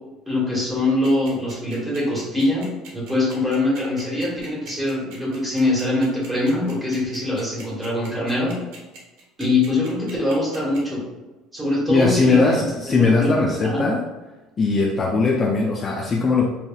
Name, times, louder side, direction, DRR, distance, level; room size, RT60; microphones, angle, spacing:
voice 1, 0.3-8.6 9.4-11.0 11.5-13.8, left 2 dB, 10° right, -5 dB, 1.5 m, -23 dB
sound 1, 1.0-10.8, right 5 dB, 90° right, 1.2 m, -43 dB
voice 2, 11.9-14.0 14.6-16.4, left 4 dB, 25° left, -2 dB, 0.4 m, -19 dB
5.6 x 2.5 x 2.4 m, 1.1 s
cardioid pair, 140°, 0 cm